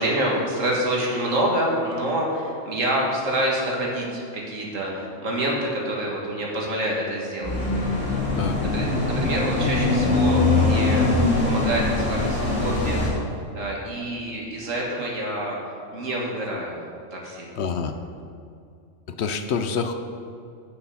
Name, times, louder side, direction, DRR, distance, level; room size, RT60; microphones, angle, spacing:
voice 1, 0.0-8.1 8.6-11.1 11.4-13.0 13.5-15.6 15.9-16.7 17.1-17.5, right 1 dB, 85° right, -2 dB, 2.2 m, -27 dB
sound 1, 7.4-13.1, left 2 dB, 80° left, 2.5 m, -22 dB
voice 2, 17.6-18.0 19.1-19.9, left 6 dB, 65° left, 8 dB, 0.9 m, -26 dB
9.1 x 6.9 x 5.6 m, 2.4 s
omnidirectional pair, 1.3 m